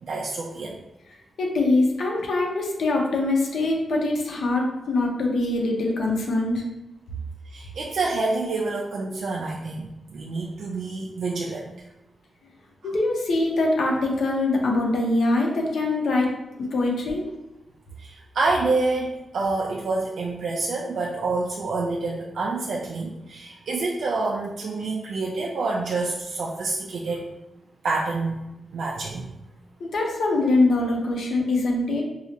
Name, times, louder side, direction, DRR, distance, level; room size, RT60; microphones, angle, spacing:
voice 1, 0.0-0.8 7.5-11.7 12.8-12.9 18.0-27.3 27.8-28.4 28.7-29.3, right 3 dB, 70° right, -2 dB, 0.3 m, -27 dB
voice 2, 1.4-6.6 12.8-16.3 16.7-17.3 29.8-32.0, left 2 dB, 75° left, 0 dB, 0.7 m, -23 dB
4.6 x 2.0 x 2.8 m, 0.92 s
wide cardioid pair, 180°, 0 cm